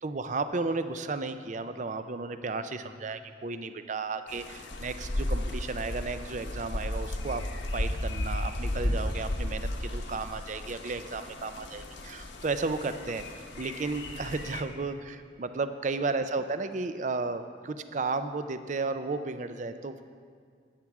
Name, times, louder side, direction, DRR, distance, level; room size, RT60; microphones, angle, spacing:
voice 1, 0.0-7.4 7.7-20.0, right 3 dB, 40° right, 10 dB, 0.5 m, -33 dB
sound 1, 4.3-14.6, left 1 dB, 75° left, 1.1 m, -34 dB
13.0 x 9.2 x 4.7 m, 2.1 s
head